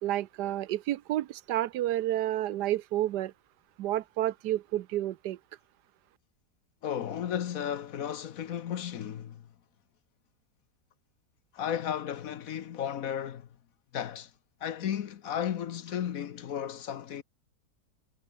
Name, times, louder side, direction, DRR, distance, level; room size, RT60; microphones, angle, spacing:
voice 1, 0.0-3.3 3.8-5.4, right 13 dB, 85° right, 1.3 m, -30 dB
voice 2, 6.8-9.5 11.5-13.5 13.9-14.3 14.6-17.2, left 9 dB, 60° left, 1.3 m, -34 dB
omnidirectional pair, 1.7 m